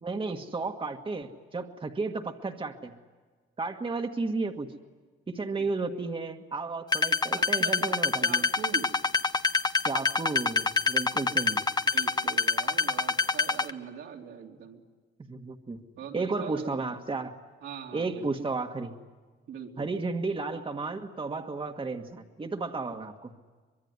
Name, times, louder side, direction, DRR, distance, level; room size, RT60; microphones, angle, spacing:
voice 1, 0.0-2.9 3.6-4.7 5.3-8.5 9.8-11.7 15.3-15.8 16.1-17.3 17.9-18.9 19.8-23.3, right 3 dB, 25° right, 4 dB, 1.6 m, -33 dB
sound 1, 6.9-13.7, left 4 dB, 20° left, 0.9 m, -26 dB
voice 2, 7.3-8.9 11.8-14.8 16.0-16.8 17.6-18.5 19.5-19.9, right 7 dB, 75° right, 1 dB, 3.2 m, -42 dB
24.5 x 22.0 x 9.6 m, 1.4 s
cardioid pair, 90°, 20 cm